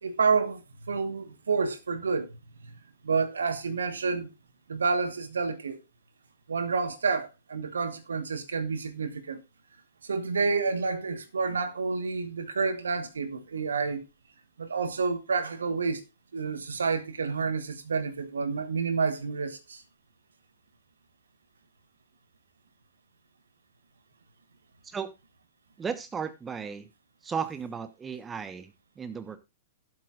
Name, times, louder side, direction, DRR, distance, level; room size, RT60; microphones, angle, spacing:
voice 1, 0.0-2.3 3.0-4.3 4.7-5.8 6.5-9.4 10.0-14.1 14.6-16.0 16.3-19.8, right 4 dB, 70° right, 1.3 m, -29 dB
voice 2, 25.8-26.9 27.2-29.4, right 6 dB, 15° right, 1.1 m, -35 dB
16.0 x 7.7 x 2.4 m
figure-of-eight pair, 105°, 0 cm